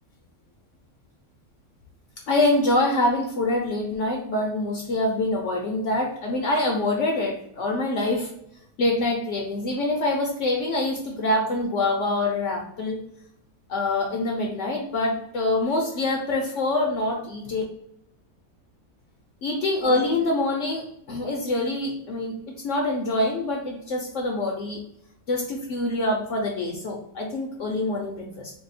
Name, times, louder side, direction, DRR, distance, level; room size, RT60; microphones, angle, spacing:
voice 1, 2.3-8.3 8.8-13.0 13.7-17.6 19.4-24.8 25.3-28.5, left 2 dB, 65° left, 0 dB, 0.8 m, -25 dB
2.7 x 2.1 x 3.9 m, 0.78 s
omnidirectional pair, 1.5 m